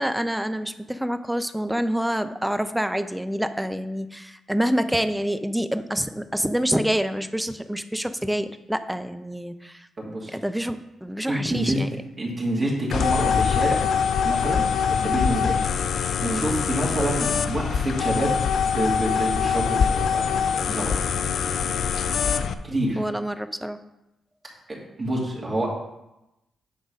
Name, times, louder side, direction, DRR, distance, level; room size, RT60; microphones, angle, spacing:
voice 1, 0.0-9.9 10.3-11.9 15.3-15.5 16.2-16.5 23.0-23.8, equal, 5° right, 10 dB, 0.7 m, -27 dB
voice 2, 10.0-10.3 11.3-11.8 12.2-13.9 14.2-15.6 15.9-18.4 18.7-20.9 22.6-23.0 24.7-25.7, right 1 dB, 40° right, -4 dB, 2.5 m, -27 dB
sound 1, 12.9-22.5, left 7 dB, 65° left, 0.5 m, -24 dB
9.6 x 3.9 x 5.2 m, 0.92 s
hypercardioid pair, 40°, 0 cm